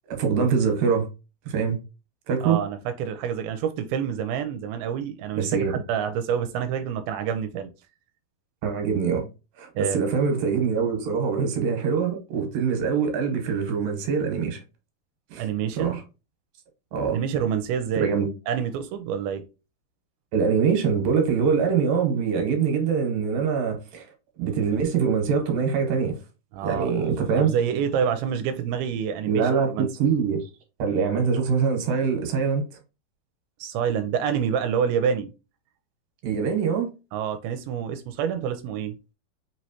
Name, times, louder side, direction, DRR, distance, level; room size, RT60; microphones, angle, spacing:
voice 1, 0.1-1.1 1.5-1.8 2.3-2.6 5.4-5.8 8.6-9.3 9.6-14.6 15.3-15.5 15.7-16.0 16.9-17.2 18.0-18.3 20.3-24.1 24.4-26.2 26.6-27.5 29.3-30.5 30.8-32.7 36.2-36.9, right 6 dB, 70° right, 2.6 m, -24 dB
voice 2, 2.4-7.7 9.8-10.0 15.3-16.0 17.1-18.1 18.5-19.4 26.5-26.9 27.4-29.9 33.6-35.3 37.1-39.0, right 8 dB, 90° right, 2.4 m, -27 dB
5.6 x 3.1 x 2.8 m
omnidirectional pair, 4.3 m